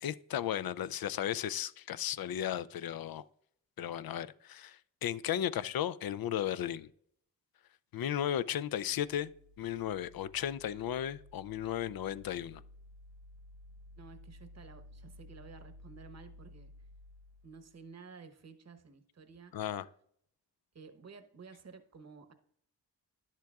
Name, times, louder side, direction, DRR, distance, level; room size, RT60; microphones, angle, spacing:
voice 1, 0.0-3.2 3.8-6.9 7.9-9.3 9.6-12.6 19.5-19.9, left 10 dB, 60° left, 17 dB, 0.5 m, -35 dB
sound 1, 8.7-17.8, left 1 dB, 75° right, 0.7 m, -55 dB
voice 2, 14.0-16.7 17.4-19.6 20.7-22.3, right 5 dB, 40° right, 8 dB, 1.0 m, -53 dB
10.5 x 7.4 x 2.3 m, 0.67 s
cardioid pair, 45°, 42 cm